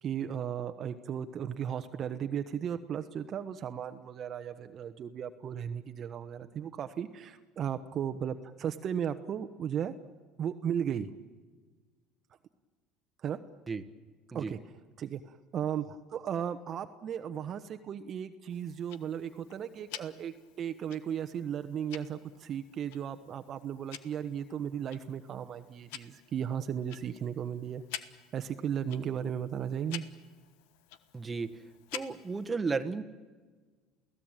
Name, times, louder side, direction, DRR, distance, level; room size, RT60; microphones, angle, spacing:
voice 1, 0.0-9.9 10.4-11.1 13.2-13.4 14.3-14.6 15.0-27.8 28.3-30.0, right 8 dB, 40° right, 7 dB, 1.2 m, -35 dB
Tick-tock, 18.5-32.5, left 11 dB, 85° left, 1.3 m, -49 dB
voice 2, 31.1-31.6 31.9-33.0, right 4 dB, 20° right, 7 dB, 1.5 m, -33 dB
29.0 x 17.0 x 9.1 m, 1.4 s
supercardioid pair, 115°, 0 cm